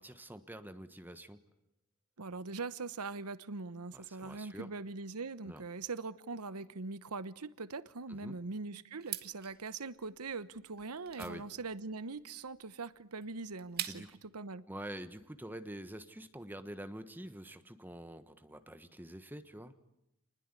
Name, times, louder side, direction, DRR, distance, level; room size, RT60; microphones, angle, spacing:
voice 1, 0.0-1.4 3.9-4.7 5.4-5.6 8.1-8.4 11.2-11.4 13.9-14.1 14.7-19.7, right 1 dB, 10° right, 1.3 m, -46 dB
voice 2, 2.2-14.0 14.3-14.6, right 3 dB, 90° right, 1.0 m, -42 dB
sound 1, 9.0-14.3, right 11 dB, 45° right, 1.8 m, -45 dB
28.5 x 20.5 x 9.9 m
head